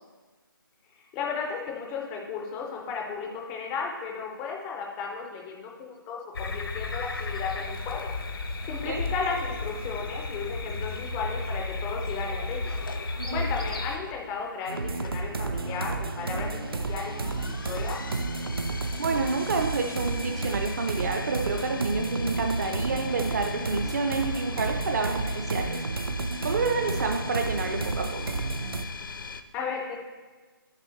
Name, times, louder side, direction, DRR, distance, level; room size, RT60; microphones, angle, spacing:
voice 1, 0.9-8.1 8.7-12.8 13.3-18.0 29.5-30.0, left 5 dB, 10° left, 0 dB, 0.3 m, -35 dB
sound 1, 6.3-14.0, left 2 dB, 85° left, 0.9 m, -33 dB
sound 2, 12.8-29.4, left 5 dB, 60° left, 0.5 m, -41 dB
sound 3, 14.7-28.8, right 3 dB, 80° right, 0.7 m, -31 dB
voice 2, 19.0-25.9 26.4-28.4, right 4 dB, 45° right, 3 dB, 0.5 m, -29 dB
9.6 x 6.7 x 3.1 m, 1.3 s
figure-of-eight pair, 160°, 12 cm